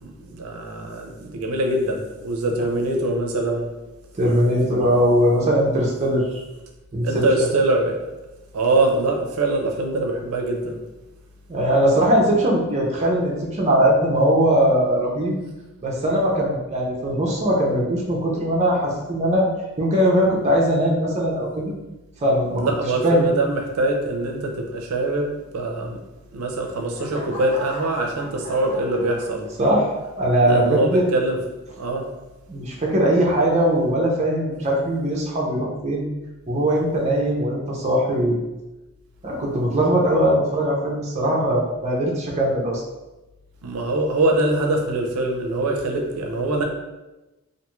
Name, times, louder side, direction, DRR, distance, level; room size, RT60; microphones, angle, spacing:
voice 1, 0.0-3.7 7.0-8.1 8.5-10.8 22.6-26.0 26.3-29.5 30.4-31.4 31.8-32.0 43.6-46.6, right 2 dB, 85° right, 2 dB, 0.4 m, -23 dB
voice 2, 4.2-6.3 6.9-7.2 11.5-15.4 15.8-19.5 19.8-21.7 22.2-22.7 23.0-23.3 29.6-31.0 32.5-36.1 36.5-38.4 39.2-42.8, equal, 30° right, -2 dB, 0.5 m, -20 dB
sound 1, 26.3-29.8 30.4-30.7, right 1 dB, 30° left, 0.7 m, -39 dB
2.5 x 2.3 x 2.9 m, 1.0 s
head